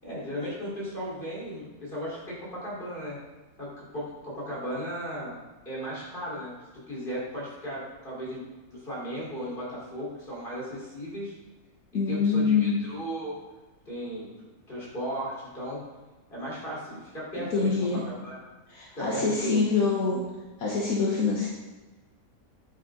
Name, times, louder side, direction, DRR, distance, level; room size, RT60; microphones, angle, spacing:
voice 1, 0.0-3.2 3.6-5.3 5.6-8.4 8.7-11.3 12.1-13.4 13.9-14.3 14.7-15.8 16.3-18.4 18.9-19.8, equal, 35° left, -6 dB, 4.4 m, -36 dB
voice 2, 11.9-12.8 17.4-18.0 18.7-20.2 20.6-21.5, left 4 dB, 75° left, -3 dB, 1.7 m, -25 dB
10.0 x 10.0 x 3.9 m, 1.2 s
omnidirectional pair, 1.5 m